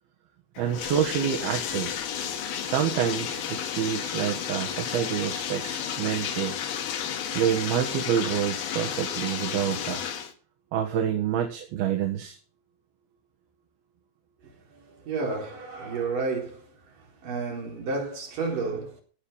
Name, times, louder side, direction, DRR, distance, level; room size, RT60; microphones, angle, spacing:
Bathtub (filling or washing), 0.6-10.3, left 8 dB, 80° left, 3.6 m, -32 dB
voice 1, 0.6-1.9 2.6-6.5 7.3-10.1 10.7-12.4, right 9 dB, 75° right, 3.4 m, -27 dB
voice 2, 14.4-19.0, right 4 dB, 60° right, 5.8 m, -32 dB
17.0 x 8.9 x 5.7 m
omnidirectional pair, 4.4 m